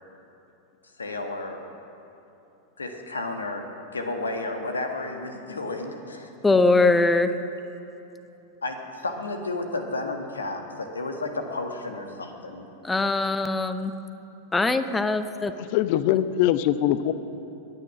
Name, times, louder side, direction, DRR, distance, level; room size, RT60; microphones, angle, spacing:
voice 1, 1.0-1.6 2.8-3.6 3.9-6.6 8.6-12.7, left 2 dB, 75° left, 4 dB, 1.6 m, -32 dB
voice 2, 6.4-7.3 12.8-13.9 14.5-15.5, left 3 dB, 10° left, 11 dB, 0.8 m, -21 dB
voice 3, 15.6-17.1, left 12 dB, 45° left, 14 dB, 0.6 m, -22 dB
22.0 x 9.9 x 6.0 m, 3.0 s
figure-of-eight pair, 90°, 0 cm